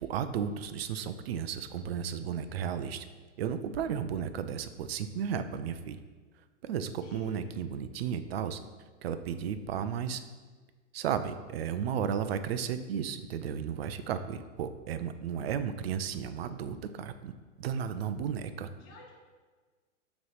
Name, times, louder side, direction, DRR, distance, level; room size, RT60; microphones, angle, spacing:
voice 1, 0.0-3.1 3.4-6.0 6.6-8.6 9.0-10.2 10.9-17.3 17.6-18.7, right 8 dB, 55° right, 10 dB, 0.4 m, -34 dB
voice 2, 7.0-7.4 18.8-19.1, left 3 dB, 25° left, -2 dB, 0.8 m, -50 dB
6.1 x 3.1 x 5.6 m, 1.4 s
hypercardioid pair, 165°, 38 cm